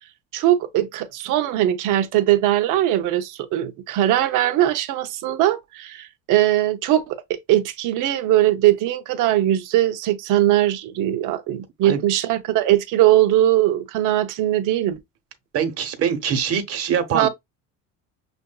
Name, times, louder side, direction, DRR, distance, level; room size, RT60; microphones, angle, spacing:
voice 1, 0.3-15.0 17.1-17.3, right 13 dB, 65° right, 0.7 m, -20 dB
voice 2, 15.5-17.3, right 8 dB, 45° right, 1.1 m, -23 dB
6.5 x 2.5 x 2.3 m
cardioid pair, 140°, 33 cm